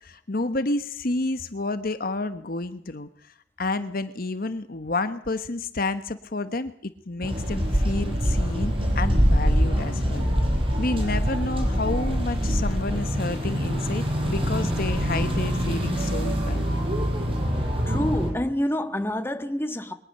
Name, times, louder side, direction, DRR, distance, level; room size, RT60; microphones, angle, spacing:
voice 1, 0.0-10.3 10.8-16.7, left 2 dB, 50° left, 1.1 m, -30 dB
sound 1, 7.2-18.3, equal, 30° right, 5.4 m, -24 dB
voice 2, 17.9-19.9, left 1 dB, 10° left, 1.5 m, -27 dB
22.5 x 19.0 x 6.7 m
head